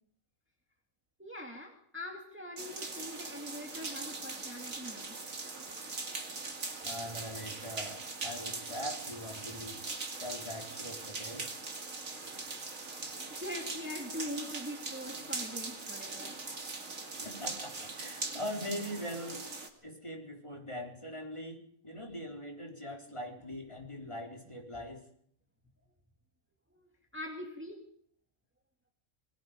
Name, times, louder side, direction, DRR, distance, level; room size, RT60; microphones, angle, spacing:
voice 1, 1.2-5.2 12.1-12.9 13.4-16.4 24.5-24.6 26.7-27.9, left 1 dB, 10° right, 2 dB, 2.3 m, -43 dB
sound 1, 2.6-19.7, right 3 dB, 90° right, 2.8 m, -41 dB
voice 2, 6.8-9.8 10.2-11.5 17.2-19.4 19.8-25.1, equal, 20° left, 1 dB, 4.4 m, -42 dB
27.0 x 21.5 x 5.3 m, 0.62 s
omnidirectional pair, 1.4 m